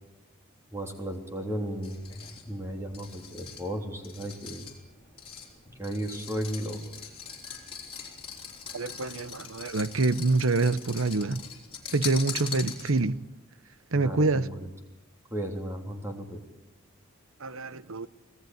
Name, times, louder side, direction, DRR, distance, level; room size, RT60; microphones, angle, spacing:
voice 1, 0.7-4.7 5.8-6.8 13.9-14.7 15.3-16.4, right 1 dB, 15° right, 3.2 m, -35 dB
sound 1, 1.8-13.2, left 7 dB, 25° left, 3.5 m, -42 dB
voice 2, 8.7-11.4 11.9-13.2 13.9-14.5 17.4-18.1, right 3 dB, 75° right, 0.9 m, -26 dB
25.0 x 17.5 x 9.4 m
head